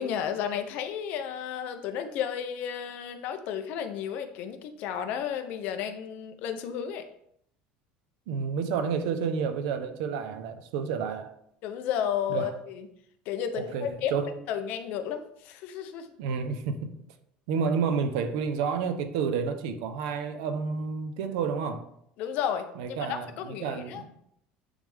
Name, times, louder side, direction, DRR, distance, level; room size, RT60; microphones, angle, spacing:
voice 1, 0.0-7.0 11.6-12.9 13.3-14.1 14.5-16.1 22.2-24.0, left 8 dB, 55° left, 8 dB, 0.7 m, -32 dB
voice 2, 8.3-11.3 12.3-12.5 13.5-14.3 16.2-16.9 17.5-21.9 22.8-24.1, right 6 dB, 85° right, 8 dB, 0.8 m, -30 dB
9.8 x 3.4 x 3.5 m, 0.73 s
cardioid pair, 165°, 3 cm